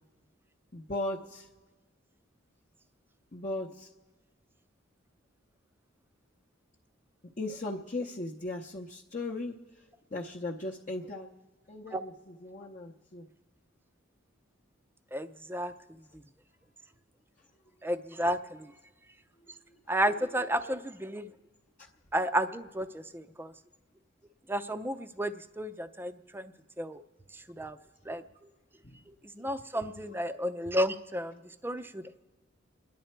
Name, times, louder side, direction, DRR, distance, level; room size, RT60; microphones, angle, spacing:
voice 1, 0.7-1.5 3.3-3.9 7.4-9.5 10.1-11.3 11.7-13.2 28.8-29.0, left 2 dB, 40° left, -3 dB, 0.8 m, -37 dB
voice 2, 15.1-15.7 17.8-18.4 19.9-21.3 22.1-23.5 24.5-26.5 26.8-27.0 27.6-27.8 28.1-28.2 29.4-32.2, right 1 dB, 10° right, 10 dB, 0.5 m, -32 dB
29.0 x 10.5 x 4.5 m, 1.3 s
head